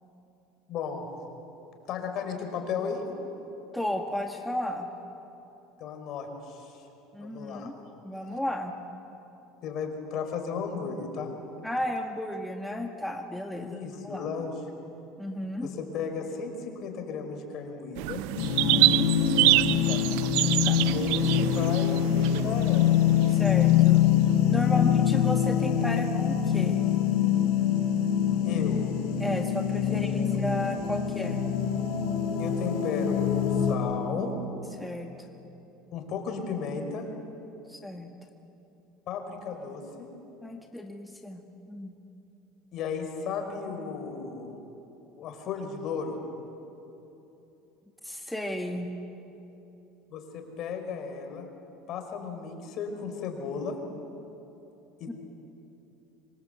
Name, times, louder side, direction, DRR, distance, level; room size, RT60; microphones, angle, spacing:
voice 1, 0.7-1.1 1.9-3.1 5.8-6.8 7.2-7.7 9.6-11.3 13.6-14.5 15.6-18.2 19.9-20.1 20.9-23.0 24.7-24.8 28.4-28.8 29.9-30.3 32.4-34.3 35.9-37.0 39.1-40.1 42.7-44.6 45.1-46.2 50.1-51.5 51.9-53.7 55.0-55.1, left 6 dB, 55° left, 4 dB, 5.1 m, -35 dB
voice 2, 3.7-4.9 7.1-7.7 8.0-8.7 11.6-14.3 15.2-15.7 18.5-19.1 20.6-20.9 23.3-24.0 24.4-26.8 29.2-31.4 34.7-35.3 37.7-38.1 40.4-41.4 41.7-41.9 48.0-48.9 55.1-55.2, left 1 dB, 5° left, 2 dB, 1.8 m, -33 dB
sound 1, 18.0-23.5, right 19 dB, 75° right, 0.6 m, -26 dB
sound 2, 18.4-33.7, left 9 dB, 75° left, 4.6 m, -24 dB
26.0 x 26.0 x 8.2 m, 2.9 s
supercardioid pair, 105°, 0 cm